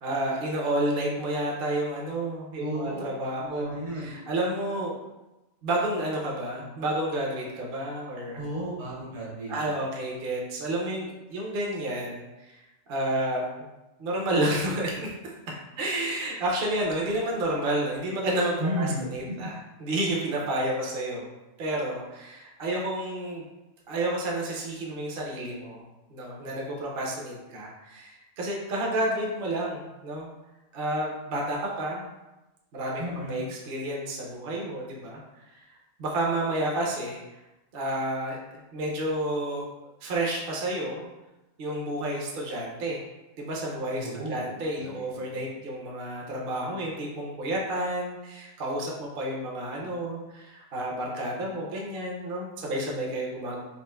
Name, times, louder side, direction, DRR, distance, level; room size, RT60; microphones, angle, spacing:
voice 1, 0.0-5.0 5.6-8.4 9.5-12.5 12.9-13.4 14.0-15.3 15.8-21.3 21.6-23.4 23.9-25.8 26.1-30.3 30.7-32.0 32.7-35.2 35.5-35.6 36.0-37.2 37.7-39.6 40.0-41.1 41.6-43.0 43.4-53.6, right 1 dB, 55° right, -3 dB, 0.7 m, -30 dB
voice 2, 2.6-3.0 3.4-4.2 8.3-9.8 18.6-19.0 19.3-19.5 33.0-33.4 43.9-44.4 44.8-45.4, equal, 75° right, -5 dB, 1.6 m, -33 dB
4.1 x 2.5 x 2.2 m, 1.0 s
omnidirectional pair, 1.4 m